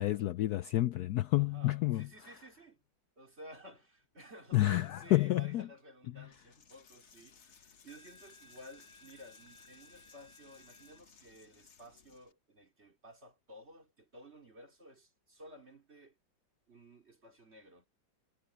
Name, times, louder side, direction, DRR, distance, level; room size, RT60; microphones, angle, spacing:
voice 1, 0.0-2.1 4.5-5.7 6.2-6.3, left 16 dB, 70° left, 1.0 m, -29 dB
voice 2, 1.4-2.8 3.2-16.2 16.7-17.9, equal, 35° right, 3.7 m, -54 dB
Coin (dropping), 6.3-12.3, left 4 dB, 45° left, 1.2 m, -59 dB
omnidirectional pair, 2.0 m